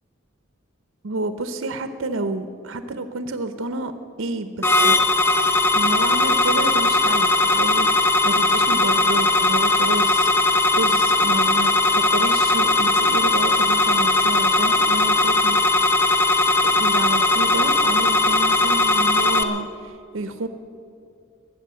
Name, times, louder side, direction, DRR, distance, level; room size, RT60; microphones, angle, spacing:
voice 1, 1.0-3.9 4.2-5.0 5.7-16.1 16.6-20.5, right 2 dB, 65° right, 9 dB, 0.8 m, -30 dB
sound 1, 4.6-19.4, left 2 dB, 10° left, 0.7 m, -18 dB
21.5 x 8.4 x 7.5 m, 2.5 s
head